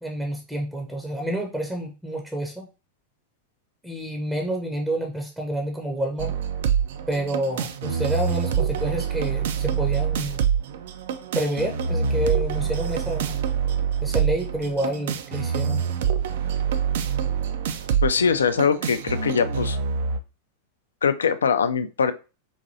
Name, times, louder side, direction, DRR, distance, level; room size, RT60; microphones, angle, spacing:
voice 1, 0.0-2.7 3.8-6.3 7.1-10.4 11.3-13.4 14.0-15.8, right 1 dB, 5° right, 1 dB, 0.6 m, -28 dB
sound 1, 6.2-20.2, right 7 dB, 55° right, 0.3 m, -26 dB
voice 2, 18.0-19.8 21.0-22.1, left 6 dB, 70° left, 11 dB, 0.3 m, -22 dB
4.0 x 2.6 x 2.7 m, 0.31 s
figure-of-eight pair, 90°, 0 cm